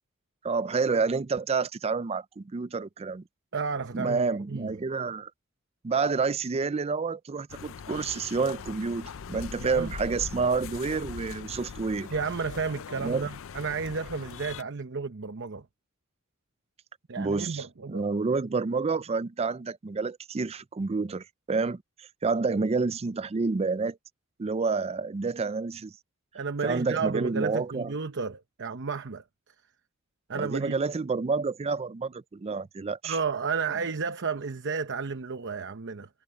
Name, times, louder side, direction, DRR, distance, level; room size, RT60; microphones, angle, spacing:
voice 1, 0.4-3.2 3.9-5.3 5.8-12.1 13.0-13.3 17.2-24.0 24.4-25.9 26.6-27.9 30.3-33.2, right 4 dB, 30° right, 0.4 m, -29 dB
voice 2, 3.5-4.7 9.6-9.9 12.1-15.7 17.1-18.0 26.3-29.2 30.3-30.8 33.0-36.1, right 5 dB, 55° right, 0.9 m, -32 dB
sound 1, 7.5-14.6, left 6 dB, 65° left, 0.5 m, -41 dB
head